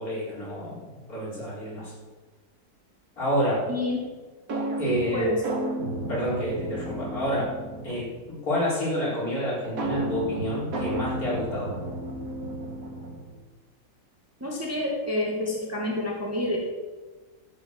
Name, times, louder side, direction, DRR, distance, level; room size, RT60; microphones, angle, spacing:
voice 1, 0.0-1.9 3.2-3.6 4.8-5.3 6.1-7.5 7.8-11.7, equal, 50° left, -6 dB, 4.6 m, -29 dB
sound 1, 4.5-8.2 9.8-13.4, right 1 dB, 50° right, 2.0 m, -32 dB
voice 2, 5.1-5.4 14.4-16.6, left 1 dB, 10° right, -2 dB, 1.7 m, -28 dB
13.0 x 6.2 x 7.3 m, 1.3 s
omnidirectional pair, 2.0 m